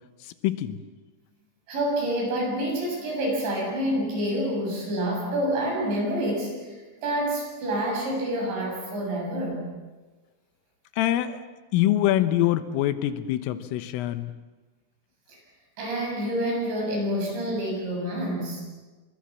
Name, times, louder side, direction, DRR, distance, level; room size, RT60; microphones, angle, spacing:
voice 1, 0.4-0.8 11.0-11.4 11.7-14.3, left 13 dB, 80° left, 11 dB, 3.7 m, -24 dB
voice 2, 1.7-9.7 15.3-15.4 15.8-18.6, right 1 dB, 60° right, 0 dB, 9.7 m, -28 dB
30.0 x 24.0 x 7.4 m, 1.2 s
omnidirectional pair, 5.8 m